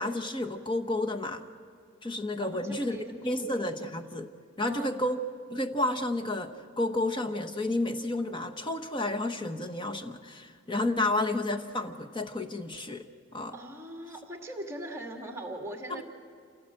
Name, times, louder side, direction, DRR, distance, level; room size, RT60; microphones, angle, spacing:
voice 1, 0.0-1.4 2.0-3.0 3.2-4.3 4.6-5.2 5.5-13.5 15.9-16.0, left 2 dB, 25° left, 6 dB, 1.1 m, -31 dB
voice 2, 2.4-3.2 4.6-5.0 13.5-16.0, right 1 dB, 15° right, 2 dB, 2.0 m, -40 dB
28.0 x 17.0 x 7.7 m, 2.2 s
head